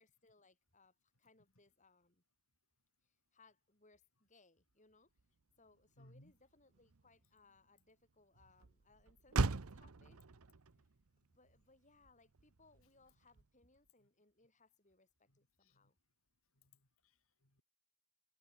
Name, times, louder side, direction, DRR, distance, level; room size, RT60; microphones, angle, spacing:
voice 1, 0.0-2.2 3.0-5.1 5.6-10.2 11.2-16.0, left 3 dB, 35° left, 6.8 m, -70 dB
Motor vehicle (road), 5.2-13.9, right 3 dB, 75° right, 0.9 m, -43 dB
voice 2, 6.0-6.3 10.7-10.8 15.6-15.9 16.6-17.6, left 1 dB, 65° left, 7.1 m, -65 dB
head